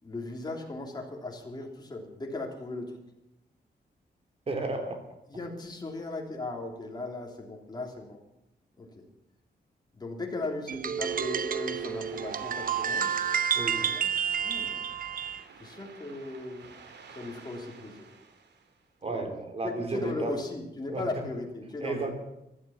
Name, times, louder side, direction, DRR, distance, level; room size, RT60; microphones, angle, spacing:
voice 1, 0.0-3.0 5.3-8.2 8.8-9.1 9.9-13.1 13.8-14.8 15.6-16.7 17.1-18.1 19.1-19.2 19.6-22.1, left 2 dB, 25° left, 1 dB, 3.1 m, -37 dB
voice 2, 4.5-5.0 13.5-13.9 19.0-20.3 20.9-21.1 21.8-22.1, right 3 dB, 35° right, 5 dB, 3.2 m, -33 dB
sound 1, 10.7-15.4, right 7 dB, 55° right, 0.8 m, -30 dB
sound 2, 11.0-18.9, right 5 dB, 85° right, 2.4 m, -52 dB
15.5 x 13.0 x 7.0 m, 0.87 s
wide cardioid pair, 150°, 17 cm